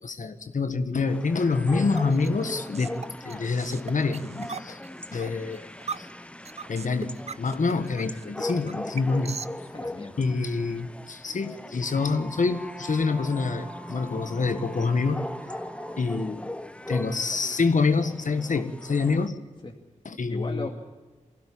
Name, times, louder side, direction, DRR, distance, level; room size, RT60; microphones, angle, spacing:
voice 1, 0.0-3.0 3.2-4.8 5.1-5.7 6.0-6.1 6.7-9.4 10.2-15.2 16.0-16.5 16.9-19.4 20.0-20.7, left 4 dB, 70° left, 9 dB, 1.6 m, -26 dB
sound 1, 1.1-19.3, left 1 dB, 10° left, 0.8 m, -40 dB
sound 2, 1.9-9.5, right 5 dB, 50° right, 0.7 m, -39 dB
voice 2, 9.7-10.3 19.6-19.8 20.3-20.7, left 2 dB, 35° left, 1 dB, 2.4 m, -37 dB
sound 3, 11.8-16.3, right 1 dB, 10° right, 3.0 m, -42 dB
23.5 x 16.5 x 8.7 m, 1.3 s
wide cardioid pair, 75°, 13 cm